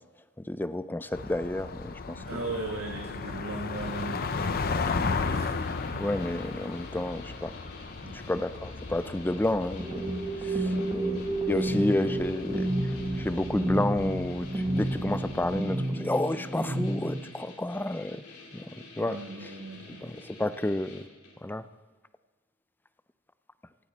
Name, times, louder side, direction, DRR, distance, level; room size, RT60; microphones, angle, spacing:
voice 1, 0.5-1.9 6.0-7.5 8.3-10.1 10.5-10.6 10.9-12.7 13.2-18.2 19.0-19.2 20.0-20.1 20.4-21.0 21.4-21.6, left 1 dB, 10° left, 13 dB, 0.4 m, -30 dB
sound 1, 1.1-15.6, left 4 dB, 45° left, 0.7 m, -35 dB
voice 2, 2.2-4.7 5.2-5.5 5.9-6.1 8.0-8.4 10.6-11.1 18.9-20.1 20.5-20.6, right 2 dB, 70° right, 0 dB, 1.4 m, -39 dB
sound 2, 3.7-21.5, left 2 dB, 85° left, 3.9 m, -49 dB
sound 3, 9.8-17.2, right 1 dB, 15° right, 1.5 m, -30 dB
17.0 x 14.0 x 4.2 m, 1.3 s
head